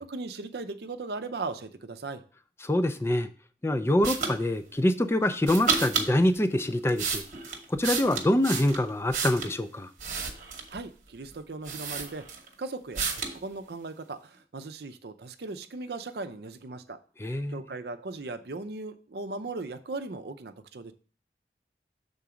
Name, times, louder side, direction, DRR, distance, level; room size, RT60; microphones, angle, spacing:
voice 1, 0.0-2.2 10.7-12.2 12.6-17.0 17.5-20.9, right 3 dB, 65° right, 8 dB, 0.6 m, -38 dB
voice 2, 2.6-3.3 3.6-7.2 7.7-9.9 17.2-17.6, left 1 dB, 15° left, 9 dB, 0.4 m, -25 dB
sound 1, 4.0-4.4 5.4-6.1 6.7-9.6 10.0-10.8 11.3-11.4 11.6-12.5 12.9-13.4, right 5 dB, 45° right, 1.0 m, -31 dB
7.0 x 3.9 x 4.9 m, 0.39 s
head